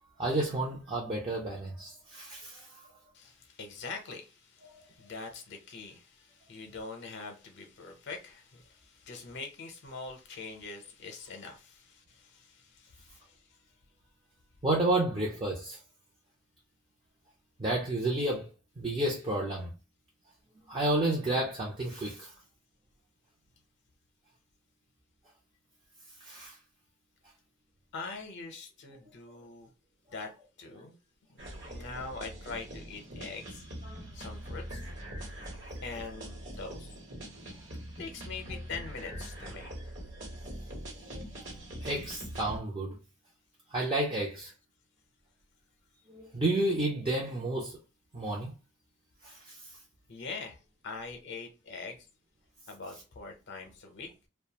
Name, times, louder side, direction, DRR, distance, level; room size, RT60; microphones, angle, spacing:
voice 1, 0.2-2.7 14.6-15.8 17.6-18.5 18.8-19.7 20.7-22.3 26.2-26.5 33.9-34.0 41.4-41.5 41.8-43.0 43.7-44.5 46.1-47.8 48.1-48.5 49.2-49.6, right 1 dB, 25° right, 0.5 m, -31 dB
voice 2, 3.1-13.4 27.9-29.7 30.1-30.3 30.6-30.9 31.3-33.6 34.1-34.9 35.8-36.9 38.0-39.7 50.1-52.1 52.7-54.1, left 4 dB, 60° left, 0.6 m, -43 dB
sound 1, 31.4-42.6, right 1 dB, 60° right, 1.1 m, -43 dB
2.4 x 2.2 x 2.8 m
head